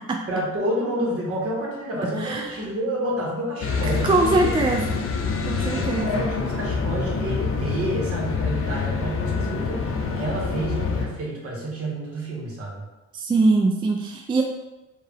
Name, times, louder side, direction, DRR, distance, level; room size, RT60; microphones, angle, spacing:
voice 1, 0.3-4.5 5.7-9.9 10.2-12.8, right 1 dB, 50° right, -3 dB, 1.4 m, -29 dB
sound 1, 3.6-11.1, left 4 dB, 45° left, 0.7 m, -26 dB
voice 2, 4.0-4.8 5.5-6.1 13.1-14.4, right 2 dB, 15° right, 2 dB, 0.3 m, -21 dB
4.5 x 2.4 x 3.3 m, 1.0 s
cardioid pair, 90°, 30 cm